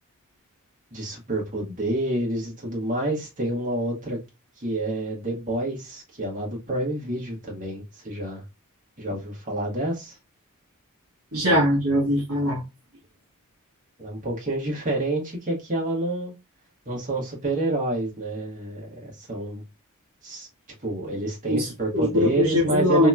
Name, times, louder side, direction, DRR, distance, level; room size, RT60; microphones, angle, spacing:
voice 1, 0.9-4.2 4.6-8.4 9.0-10.2 14.0-16.3 16.8-19.6 20.2-20.5 20.8-23.1, right 1 dB, 35° right, 1.4 m, -28 dB
voice 2, 11.3-12.6 21.5-21.7 21.9-23.1, left 1 dB, 65° right, 1.1 m, -21 dB
2.9 x 2.9 x 2.3 m
head